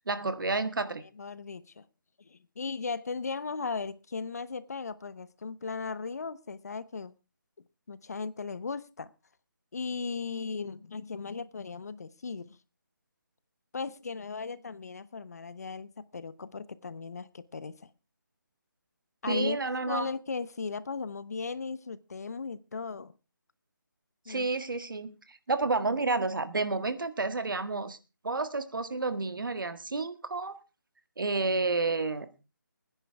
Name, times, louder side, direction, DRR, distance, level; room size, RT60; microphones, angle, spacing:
voice 1, 0.1-1.0 19.3-20.1 24.3-28.0 28.2-30.6 31.2-32.4, right 3 dB, 80° right, 1.7 m, -30 dB
voice 2, 1.2-1.8 2.2-7.1 7.9-9.1 9.7-12.6 13.7-17.9 19.2-19.6 19.9-23.1 24.3-24.5, left 4 dB, 50° left, 0.9 m, -37 dB
22.5 x 10.0 x 3.4 m
hypercardioid pair, 170°, 11 cm